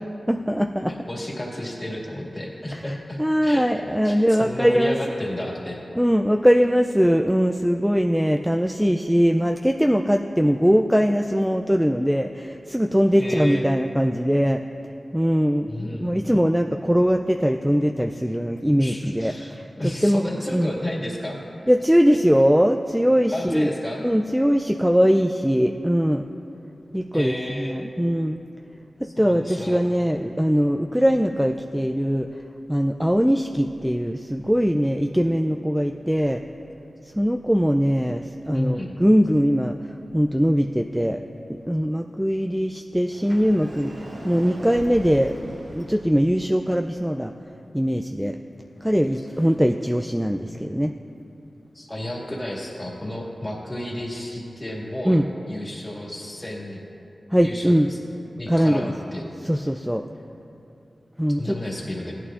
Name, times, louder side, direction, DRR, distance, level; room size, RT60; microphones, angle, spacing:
voice 1, 0.3-0.9 2.9-5.0 6.0-14.6 15.1-19.6 20.0-20.2 20.5-20.7 21.7-23.7 24.0-26.2 26.9-28.4 29.2-32.3 32.7-36.4 37.2-39.8 40.1-41.2 41.7-43.9 44.2-47.3 47.7-48.4 48.8-50.9 55.1-55.2 57.3-57.9 58.5-58.9 59.4-60.0 61.2-61.6, equal, 5° right, 4 dB, 0.3 m, -21 dB
voice 2, 0.9-3.7 4.0-5.8 13.2-13.6 15.7-16.2 18.7-21.4 23.3-24.0 27.1-27.7 29.0-29.8 38.5-38.9 51.7-55.2 55.5-56.8 57.4-58.0 58.4-59.2 61.4-62.1, left 1 dB, 25° left, -3 dB, 2.1 m, -32 dB
Sliding door, 43.1-46.1, right 1 dB, 85° right, 2.0 m, -40 dB
16.0 x 11.0 x 2.5 m, 2.8 s
wide cardioid pair, 60°, 0 cm